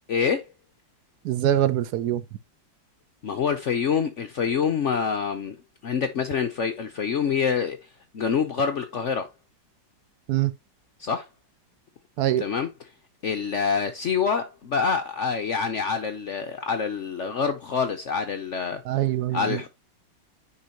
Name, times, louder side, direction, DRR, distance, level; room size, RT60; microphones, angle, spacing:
voice 1, 0.1-0.4 3.2-5.5 5.8-7.8 8.1-9.2 11.0-11.3 12.4-12.7 13.2-18.8 19.3-19.7, left 6 dB, 70° left, 0.7 m, -26 dB
voice 2, 1.2-2.2 10.3-10.5 12.2-12.5 18.8-19.6, right 12 dB, 70° right, 1.0 m, -24 dB
9.8 x 3.8 x 2.9 m
omnidirectional pair, 2.0 m